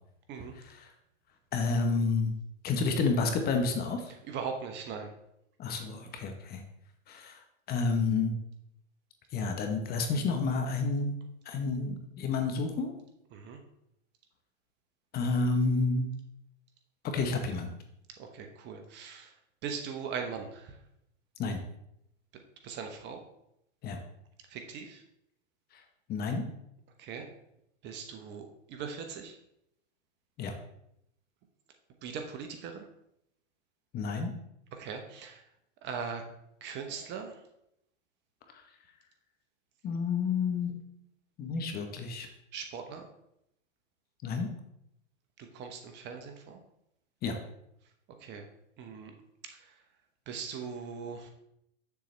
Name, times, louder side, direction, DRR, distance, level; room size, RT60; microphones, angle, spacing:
voice 1, 0.6-0.9 1.5-2.3 2.6-4.1 5.6-6.6 7.1-8.3 9.3-11.1 11.4-12.9 15.1-16.1 17.0-17.7 21.4-21.6 23.8-24.0 25.7-25.8 26.1-26.4 30.4-30.5 33.9-34.3 38.5-38.6 39.8-40.8 41.4-42.3 44.2-44.5 47.2-47.4, left 4 dB, 25° left, 5 dB, 0.9 m, -30 dB
voice 2, 4.2-5.1 13.3-13.6 18.2-19.3 19.6-20.8 22.6-23.2 24.5-25.0 27.0-27.3 27.8-29.4 32.0-32.8 34.7-35.4 35.8-36.2 36.6-37.4 42.5-43.1 45.4-46.6 48.2-48.4 48.8-49.1 49.5-49.7 50.3-51.3, right 6 dB, 30° right, 5 dB, 0.9 m, -40 dB
7.4 x 6.9 x 3.2 m, 0.78 s
hypercardioid pair, 125°, 37 cm